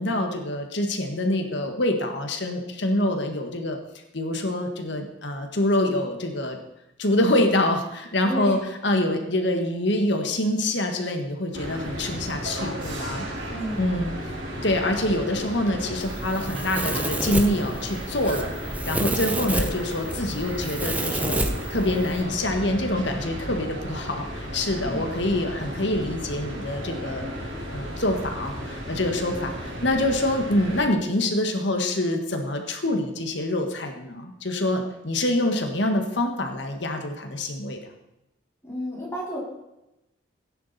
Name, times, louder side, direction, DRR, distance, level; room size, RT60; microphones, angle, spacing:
voice 1, 0.0-3.8 4.1-6.6 7.0-8.6 8.8-13.2 13.8-14.1 14.6-21.4 21.7-27.3 27.7-37.8, left 1 dB, 65° left, 4 dB, 1.8 m, -25 dB
voice 2, 8.2-8.6 13.5-13.9 24.8-25.2 38.6-39.4, equal, 15° left, -6 dB, 4.7 m, -32 dB
sound 1, 11.5-30.9, equal, 80° right, 4.0 m, -34 dB
Domestic sounds home sounds, 16.0-22.2, right 1 dB, 10° right, 0.8 m, -30 dB
17.0 x 10.0 x 4.4 m, 0.91 s
head